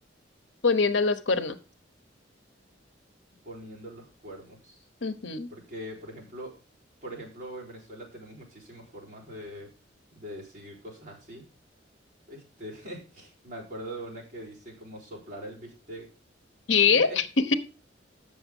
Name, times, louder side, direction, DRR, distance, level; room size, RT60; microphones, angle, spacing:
voice 1, 0.6-1.6 5.0-5.5 16.7-17.5, left 5 dB, 75° left, 11 dB, 0.9 m, -23 dB
voice 2, 3.4-4.8 5.5-6.5 7.0-9.7 10.1-11.4 12.3-16.1 16.9-17.2, equal, 45° right, -3 dB, 4.3 m, -42 dB
8.5 x 6.9 x 5.4 m, 0.33 s
head